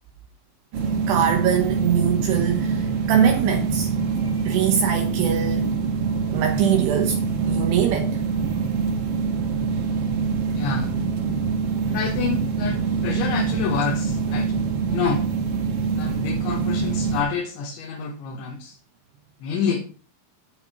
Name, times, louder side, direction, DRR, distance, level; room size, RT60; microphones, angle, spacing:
sound 1, 0.7-17.2, right 5 dB, 55° right, 3.2 m, -24 dB
voice 1, 1.1-3.9 4.5-5.8 6.3-8.2, right 8 dB, 75° right, 2.8 m, -23 dB
voice 2, 10.6-10.9 11.9-12.8 13.0-14.5 14.9-15.2 16.0-18.8 19.4-19.8, left 6 dB, 80° left, 3.9 m, -27 dB
9.1 x 8.7 x 5.2 m
omnidirectional pair, 5.3 m